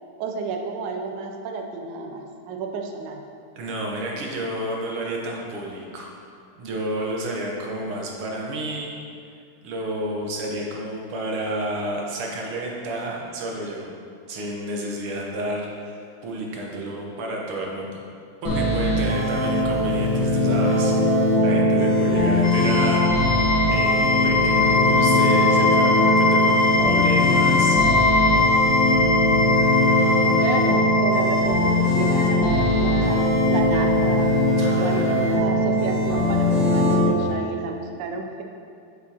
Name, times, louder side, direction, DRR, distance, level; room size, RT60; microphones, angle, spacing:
voice 1, 0.2-3.2 30.3-34.4 34.8-38.4, right 5 dB, 70° right, 2 dB, 1.2 m, -31 dB
voice 2, 3.6-6.2 6.6-8.9 9.6-13.9 14.3-18.0 18.4-23.1 23.7-27.8 34.6-35.2, right 1 dB, 90° right, -1 dB, 1.9 m, -30 dB
sound 1, 18.4-37.1, left 1 dB, 55° left, 1.9 m, -20 dB
sound 2, 22.4-36.3, left 3 dB, 75° left, 0.7 m, -23 dB
8.0 x 6.1 x 2.9 m, 2.3 s
omnidirectional pair, 2.3 m